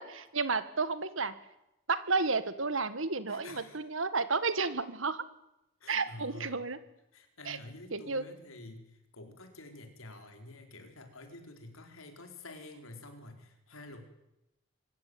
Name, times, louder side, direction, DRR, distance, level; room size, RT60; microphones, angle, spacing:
voice 1, 0.0-1.4 1.9-5.2 5.9-6.8 7.5-7.6 7.9-8.3, right 4 dB, 75° right, 13 dB, 1.8 m, -32 dB
voice 2, 3.3-3.8 5.8-6.7 7.1-14.0, left 2 dB, 90° left, 5 dB, 4.4 m, -49 dB
24.5 x 14.5 x 9.5 m, 0.87 s
head